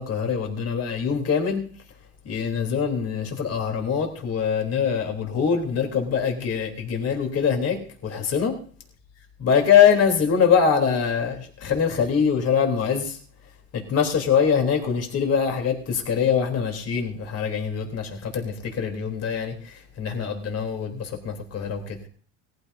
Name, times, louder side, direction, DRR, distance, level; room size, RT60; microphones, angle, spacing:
voice 1, 0.0-1.6 2.3-7.8 8.0-8.5 9.4-13.2 13.7-22.0, left 7 dB, 45° left, 3 dB, 3.6 m, -23 dB
19.0 x 14.5 x 2.7 m, 0.43 s
supercardioid pair, 95°, 36 cm